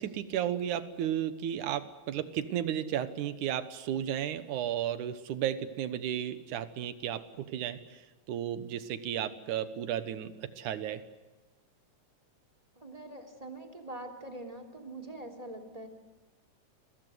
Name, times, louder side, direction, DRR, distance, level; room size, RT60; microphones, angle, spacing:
voice 1, 0.0-8.0 8.3-11.0, right 10 dB, 70° right, 12 dB, 2.6 m, -33 dB
voice 2, 12.8-15.9, right 2 dB, 10° right, 3 dB, 3.0 m, -44 dB
29.5 x 22.0 x 8.1 m, 1.1 s
omnidirectional pair, 3.8 m